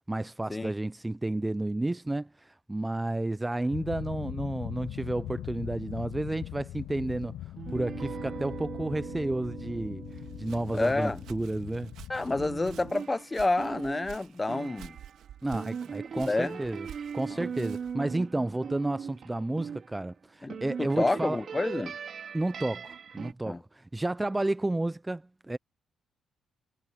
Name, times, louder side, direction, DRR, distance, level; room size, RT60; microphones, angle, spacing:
voice 1, 0.1-7.4 7.7-10.0 10.4-11.9 15.4-16.9 17.1-21.4 22.3-25.6, right 2 dB, 15° right, 0.5 m, -31 dB
sound 1, 3.7-12.9, left 14 dB, 90° left, 4.6 m, -41 dB
sound 2, 7.6-11.9 12.4-20.1 20.5-23.3, right 7 dB, 50° right, 4.8 m, -40 dB
Walk footsteps, 10.1-18.1, right 11 dB, 80° right, 2.7 m, -51 dB
voice 2, 10.7-11.2 12.1-15.0 16.1-16.6 17.3-17.5 20.4-22.0 23.5-23.6, left 2 dB, 20° left, 1.1 m, -29 dB
cardioid pair, 90°, 0 cm